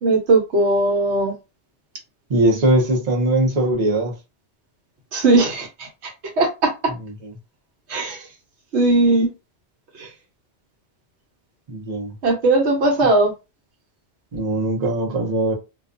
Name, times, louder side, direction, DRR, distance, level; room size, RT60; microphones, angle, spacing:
voice 1, 0.0-1.3 5.1-5.9 6.4-6.7 7.9-8.2 8.7-9.3 10.0-10.1 12.2-13.3, right 2 dB, 75° right, 1.1 m, -18 dB
voice 2, 2.3-4.1 11.7-12.1 14.3-15.5, right 1 dB, 40° right, 0.8 m, -20 dB
2.5 x 2.2 x 2.5 m
omnidirectional pair, 1.2 m